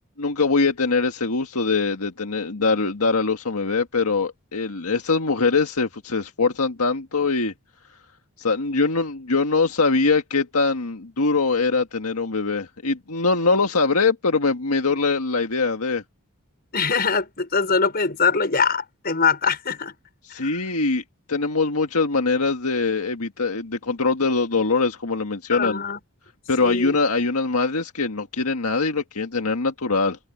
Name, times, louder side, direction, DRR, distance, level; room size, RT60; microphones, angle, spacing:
voice 1, 0.2-7.5 8.4-16.0 20.2-25.8 26.5-30.2, left 4 dB, 90° left, 1.7 m, -22 dB
voice 2, 16.7-19.9 20.4-20.5 25.5-26.0 26.6-27.0, left 5 dB, 45° left, 5.3 m, -22 dB
head